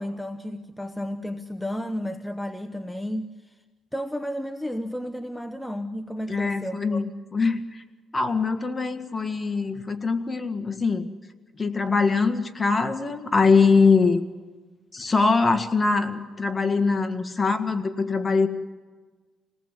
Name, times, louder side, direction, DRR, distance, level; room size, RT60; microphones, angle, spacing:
voice 1, 0.0-3.5 3.9-6.8, equal, 5° left, 8 dB, 0.9 m, -32 dB
voice 2, 6.3-7.8 8.1-11.1 11.6-14.2 14.9-18.5, left 4 dB, 25° left, 8 dB, 1.9 m, -22 dB
27.5 x 18.5 x 7.5 m, 1.4 s
cardioid pair, 90°, 0 cm